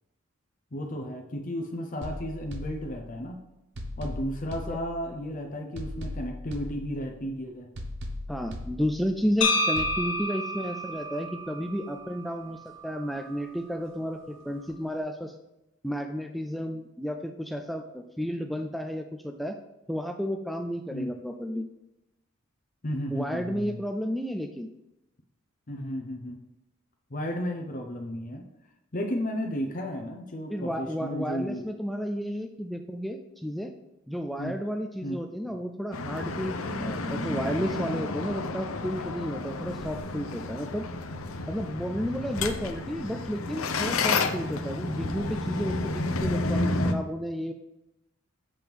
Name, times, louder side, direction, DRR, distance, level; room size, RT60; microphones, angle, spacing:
voice 1, 0.7-3.4 4.0-7.7 20.9-21.1 22.8-23.8 25.7-26.4 27.1-28.4 28.9-31.7 34.4-34.6 35.0-35.2 35.5-35.6, equal, 40° left, 3 dB, 0.7 m, -33 dB
sound 1, 2.0-3.3 3.8-5.3 5.8-7.3 7.8-9.3 9.8-10.0, left 1 dB, 60° right, 0.9 m, -39 dB
voice 2, 8.3-15.3 15.8-19.6 19.9-21.7 23.1-24.7 30.5-33.7 34.1-40.9 41.5-47.5, equal, ahead, 4 dB, 0.3 m, -32 dB
sound 2, 9.4-13.5, left 2 dB, 60° left, 1.3 m, -31 dB
sound 3, 35.9-46.9, left 3 dB, 80° left, 0.7 m, -31 dB
7.5 x 3.6 x 6.0 m, 0.92 s
head